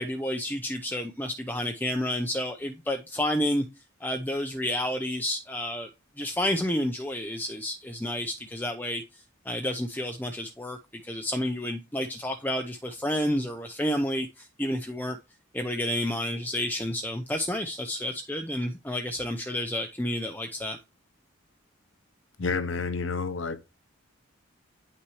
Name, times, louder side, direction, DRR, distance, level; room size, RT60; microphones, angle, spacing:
voice 1, 0.0-3.6 4.0-5.9 6.2-9.0 9.5-10.8 11.0-15.2 15.5-20.8, left 1 dB, 10° left, 0.6 m, -30 dB
voice 2, 22.4-23.6, left 4 dB, 65° left, 0.8 m, -29 dB
9.7 x 5.8 x 3.1 m
head